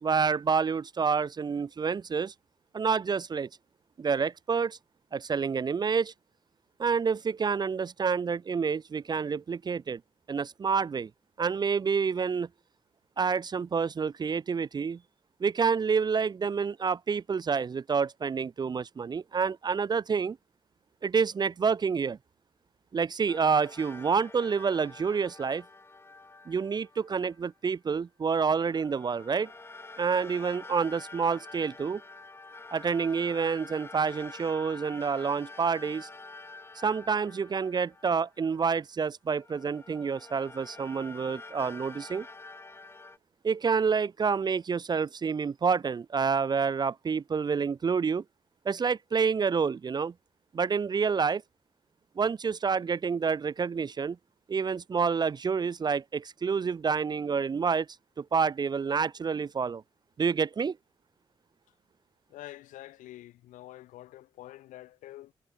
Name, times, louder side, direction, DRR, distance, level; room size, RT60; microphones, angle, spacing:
voice 1, 0.0-2.3 2.7-3.5 4.0-4.8 5.1-6.1 6.8-10.0 10.3-11.1 11.4-12.5 13.2-15.0 15.4-20.4 21.0-22.2 22.9-25.6 26.5-29.5 30.0-32.0 32.7-36.1 36.8-42.3 43.4-48.2 48.7-50.1 50.5-51.4 52.2-54.2 54.5-57.9 58.2-59.8 60.2-60.8, right 5 dB, 35° right, 0.4 m, -28 dB
sound 1, 23.3-27.5 28.4-38.8 39.3-43.2, left 3 dB, 20° left, 0.5 m, -48 dB
voice 2, 62.3-65.3, left 15 dB, 80° left, 0.9 m, -47 dB
hypercardioid pair, 45°, 13 cm